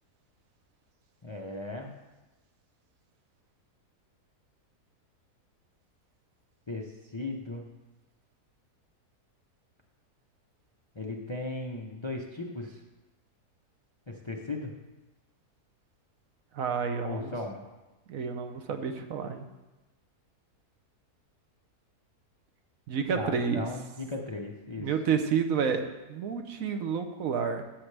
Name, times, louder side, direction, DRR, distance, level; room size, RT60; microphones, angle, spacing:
voice 1, 1.2-1.9 6.7-6.9 7.1-7.7 10.9-12.8 14.1-14.7 17.0-17.7 23.1-24.9, left 2 dB, 40° left, 0 dB, 0.4 m, -36 dB
voice 2, 16.5-17.3 18.1-19.4 22.9-23.7 24.8-27.6, right 6 dB, 65° right, 7 dB, 1.0 m, -30 dB
13.0 x 7.5 x 3.3 m, 1.1 s
omnidirectional pair, 1.7 m